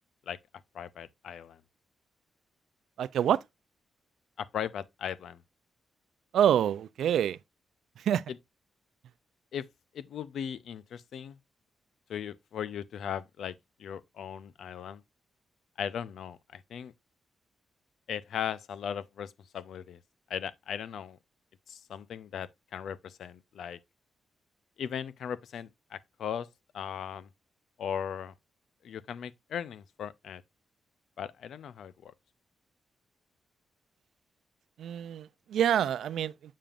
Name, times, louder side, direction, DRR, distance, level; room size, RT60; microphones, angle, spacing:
voice 1, 0.7-1.6 4.4-5.4 8.3-8.4 9.5-9.7 9.9-11.4 12.1-15.0 15.8-16.9 18.1-20.0 20.3-21.2 21.7-23.8 24.8-26.5 26.7-27.3 27.8-28.3 28.8-30.4 31.2-32.1, left 8 dB, 70° left, 0.5 m, -38 dB
voice 2, 3.0-3.4 6.3-7.4 8.0-8.2 34.8-36.3, right 10 dB, 90° right, 0.4 m, -26 dB
7.4 x 6.9 x 2.4 m
wide cardioid pair, 160°, 0 cm